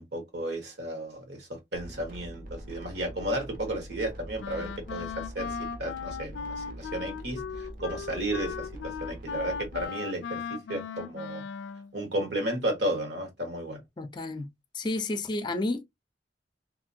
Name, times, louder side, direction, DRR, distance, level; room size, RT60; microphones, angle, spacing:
voice 1, 0.0-11.4 11.9-13.8, right 1 dB, 75° right, 1.4 m, -33 dB
sound 1, 1.7-9.9, right 1 dB, 50° right, 0.8 m, -44 dB
Wind instrument woodwind instrument, 4.4-11.9, left 6 dB, 85° left, 0.3 m, -37 dB
voice 2, 14.0-14.5 14.7-15.8, left 2 dB, 25° left, 0.5 m, -31 dB
2.8 x 2.6 x 2.6 m
head